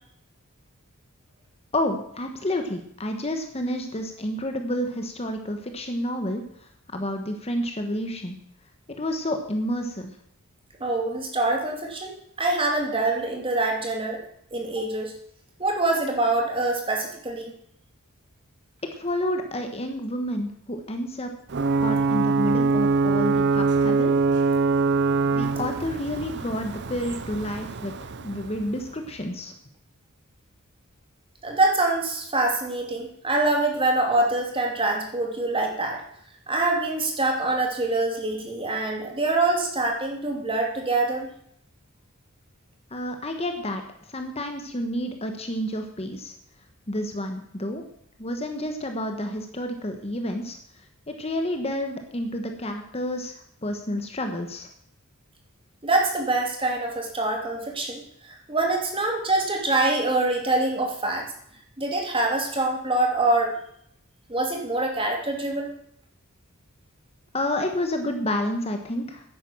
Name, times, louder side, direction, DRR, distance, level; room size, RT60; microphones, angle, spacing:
voice 1, 1.7-6.4 6.9-8.4 9.0-10.1 19.0-21.3 21.8-24.1 25.3-27.9 28.2-29.5 42.9-43.8 44.1-46.3 46.9-47.8 48.2-50.6 51.2-53.3 53.6-54.7 67.3-69.2, left 1 dB, 30° left, 5 dB, 1.3 m, -29 dB
voice 2, 10.8-14.2 14.5-15.1 15.6-17.5 31.4-36.0 36.5-41.3 55.8-58.0 58.3-61.3 61.8-63.5 64.3-65.7, right 2 dB, 25° right, 1 dB, 2.6 m, -25 dB
Ocean / Boat Water vehicle / Alarm, 21.5-29.1, right 4 dB, 55° right, 0.7 m, -24 dB
10.5 x 9.5 x 7.2 m, 0.69 s
head